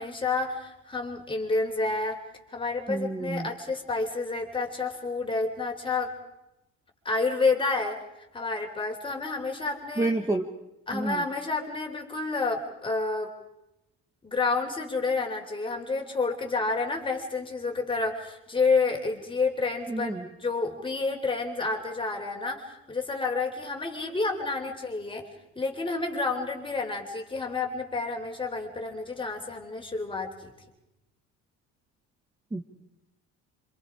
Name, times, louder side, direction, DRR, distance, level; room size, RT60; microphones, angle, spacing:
voice 1, 0.0-2.2 2.5-6.1 7.0-8.0 8.3-10.1 10.9-13.3 14.2-20.1 20.4-25.3 25.6-30.5, left 3 dB, 15° left, 3 dB, 4.0 m, -29 dB
voice 2, 2.9-3.5 10.0-10.5 10.9-11.2 19.9-20.3 32.5-32.6, right 2 dB, 10° right, 3 dB, 1.6 m, -29 dB
27.0 x 26.5 x 5.0 m, 0.90 s
cardioid pair, 120°, 34 cm